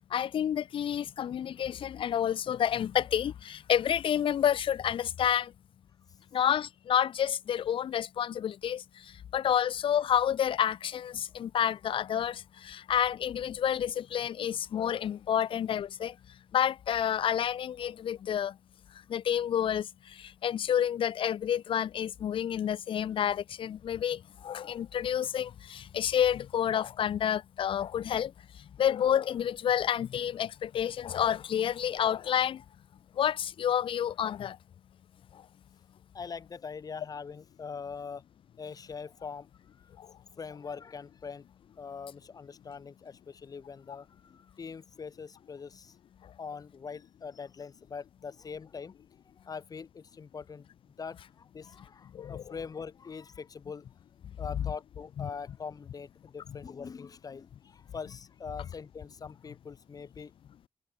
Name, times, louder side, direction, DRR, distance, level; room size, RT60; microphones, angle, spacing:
voice 1, 0.1-5.5 6.3-16.2 16.5-18.6 19.1-28.3 28.8-32.6 33.2-34.6 35.3-35.4 40.0-40.1 46.2-46.3 52.1-52.4 54.5-54.6 55.2-55.3, left 9 dB, 80° left, 1.1 m, -29 dB
voice 2, 36.1-38.2 38.6-39.5 39.8-39.9 40.4-41.4 41.7-46.0 46.4-49.0 49.3-53.9 54.4-60.3, left 5 dB, 45° left, 1.2 m, -43 dB
cardioid pair, 100°, 9 cm